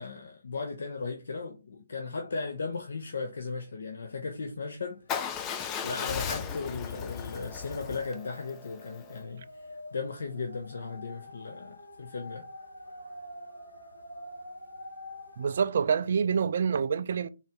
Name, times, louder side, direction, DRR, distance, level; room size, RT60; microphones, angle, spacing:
voice 1, 0.0-5.1 5.8-12.5, left 4 dB, 60° left, 0.6 m, -36 dB
sound 1, 5.0-5.1 5.4-15.6, left 1 dB, 85° left, 1.7 m, -48 dB
Motorcycle / Engine starting / Idling, 5.1-9.2, left 7 dB, 20° left, 0.4 m, -36 dB
voice 2, 15.4-17.3, right 6 dB, 50° right, 0.4 m, -27 dB
3.9 x 3.0 x 3.5 m
figure-of-eight pair, 140°, 0 cm